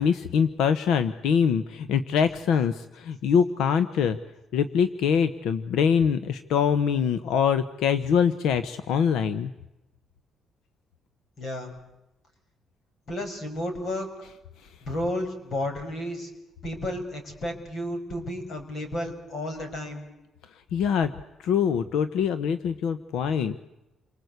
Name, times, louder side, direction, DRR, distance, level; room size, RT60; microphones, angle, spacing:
voice 1, 0.0-4.2 4.5-9.5 20.7-21.1 21.4-23.6, left 7 dB, 85° left, 12 dB, 1.1 m, -24 dB
voice 2, 11.4-11.7 13.1-14.1 14.8-16.3 16.6-20.0, left 1 dB, 45° left, 5 dB, 6.1 m, -32 dB
29.0 x 25.0 x 8.2 m, 0.95 s
cardioid pair, 150°, 0 cm